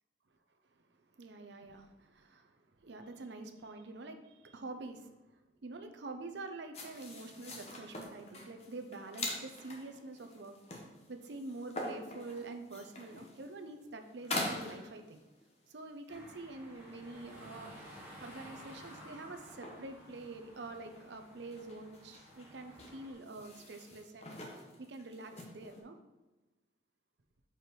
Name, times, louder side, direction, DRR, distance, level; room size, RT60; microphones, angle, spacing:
voice 1, 1.1-2.5 2.8-5.1 5.6-10.6 11.1-15.2 15.7-17.7 18.2-24.3 24.8-26.0, right 2 dB, 70° right, 7 dB, 0.6 m, -46 dB
sound 1, 6.7-15.5 16.1-16.2 16.8-17.5 17.8-18.1 18.5-19.1 19.5-25.8, left 2 dB, 35° left, 1.0 m, -45 dB
sound 2, 16.1-23.1, equal, 15° right, 1.8 m, -53 dB
4.8 x 4.5 x 5.2 m, 1.1 s
head